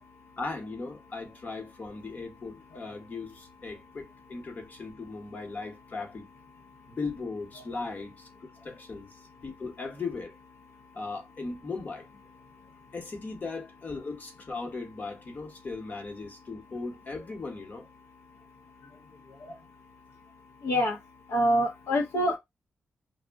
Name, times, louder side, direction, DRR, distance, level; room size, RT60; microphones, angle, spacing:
voice 1, 0.4-6.3 6.9-8.3 8.6-10.3 10.9-12.1 12.9-17.9, left 3 dB, 40° left, 0.9 m, -38 dB
voice 2, 20.6-21.0 21.3-22.4, equal, 80° left, 0.6 m, -25 dB
2.3 x 2.1 x 3.4 m
cardioid pair, 95°, 4 cm